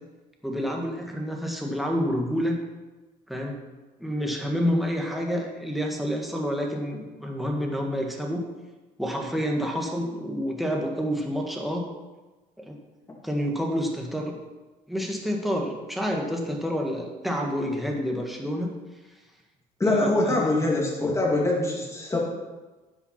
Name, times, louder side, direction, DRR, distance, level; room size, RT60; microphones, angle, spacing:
voice 1, 0.4-2.6 3.3-3.6 4.0-8.4 9.0-11.9 12.6-12.7 13.2-14.3 14.9-18.7 19.8-20.5, equal, ahead, 0 dB, 1.7 m, -28 dB
voice 2, 19.8-22.2, left 2 dB, 15° left, -3 dB, 2.9 m, -23 dB
9.7 x 5.9 x 5.9 m, 1.2 s
cardioid pair, 110°, 17 cm